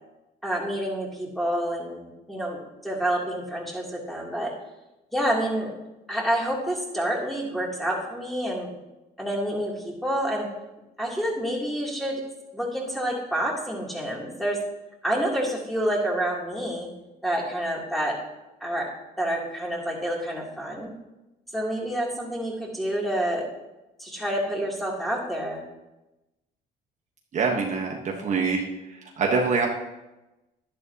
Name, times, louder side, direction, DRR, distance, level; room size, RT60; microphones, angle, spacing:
voice 1, 0.4-2.6 2.8-4.5 5.1-5.7 6.1-8.7 9.2-10.5 11.0-12.2 12.5-14.6 15.0-16.9 17.2-18.1 18.6-18.9 19.2-20.9 21.5-23.4 24.0-25.6, right 1 dB, ahead, -3 dB, 3.0 m, -28 dB
voice 2, 27.3-28.6 29.2-29.7, right 4 dB, 45° right, 1 dB, 1.3 m, -24 dB
11.5 x 11.0 x 2.9 m, 1.0 s
cardioid pair, 110°, 17 cm